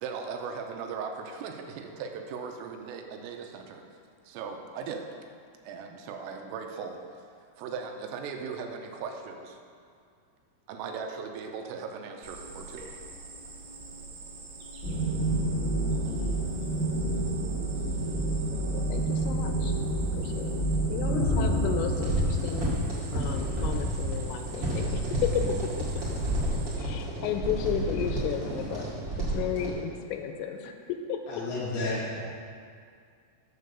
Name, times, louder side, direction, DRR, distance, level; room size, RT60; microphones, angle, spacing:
voice 1, 0.0-3.8 4.3-5.1 5.6-7.0 7.6-9.6 10.7-12.9, right 5 dB, 85° right, 4 dB, 3.3 m, -38 dB
Cricket, 12.2-26.8, right 3 dB, 70° right, 3.4 m, -43 dB
sound 1, 14.8-24.1, right 1 dB, 50° left, 0.9 m, -29 dB
voice 2, 18.7-20.6 20.9-22.7 23.1-25.0 25.8-26.0 26.8-28.9 29.2-31.4, left 7 dB, 90° left, 5 dB, 3.3 m, -34 dB
sound 2, 21.9-29.7, right 1 dB, 55° right, 1.3 m, -31 dB
voice 3, 31.3-32.2, left 2 dB, 70° left, -5 dB, 2.7 m, -31 dB
7.6 x 6.6 x 6.7 m, 2.3 s
omnidirectional pair, 5.9 m